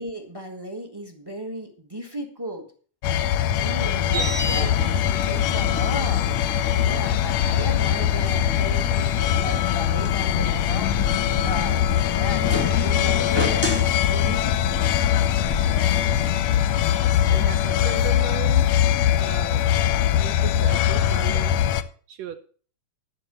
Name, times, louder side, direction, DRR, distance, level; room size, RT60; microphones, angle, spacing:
voice 1, 0.0-2.6 3.5-6.2 6.8-10.9 11.3-11.8 12.1-14.8, equal, 15° right, 5 dB, 0.9 m, -35 dB
sound 1, 3.0-21.8, left 10 dB, 75° left, 1.7 m, -22 dB
sound 2, 4.1-16.3, left 2 dB, 10° left, 1.5 m, -32 dB
voice 2, 4.1-4.7 17.3-18.7 19.1-19.8 20.2-21.6 22.1-22.4, right 9 dB, 70° right, 9 dB, 1.8 m, -36 dB
12.5 x 5.9 x 6.9 m, 0.42 s
omnidirectional pair, 3.5 m